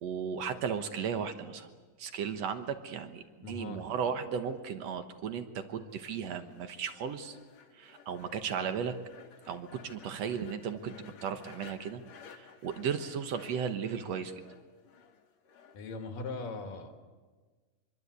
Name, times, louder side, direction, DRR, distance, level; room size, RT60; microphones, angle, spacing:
voice 1, 0.0-1.7 2.0-7.4 7.7-9.0 9.5-11.0 11.2-12.0 12.3-14.3, right 7 dB, 65° right, 9 dB, 1.9 m, -35 dB
voice 2, 3.4-3.9 15.7-16.9, left 3 dB, 70° left, 5 dB, 3.6 m, -40 dB
sound 1, 5.9-15.8, left 7 dB, 55° left, 2.5 m, -56 dB
25.0 x 23.0 x 8.2 m, 1.4 s
omnidirectional pair, 4.1 m